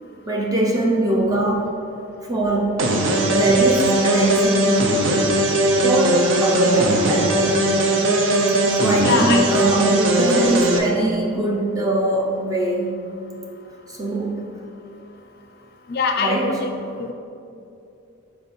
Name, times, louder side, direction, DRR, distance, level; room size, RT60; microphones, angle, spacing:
voice 1, 0.3-1.7 2.3-2.8 3.3-5.1 5.8-7.5 8.8-13.0 13.9-14.5 16.2-16.5, right 1 dB, 15° right, -3 dB, 0.7 m, -21 dB
sound 1, 2.8-10.8, right 1 dB, 60° right, 0.6 m, -19 dB
voice 2, 9.0-9.6 15.9-16.7 17.0-17.1, left 5 dB, 45° left, 4 dB, 0.4 m, -23 dB
5.3 x 4.3 x 4.3 m, 2.7 s
head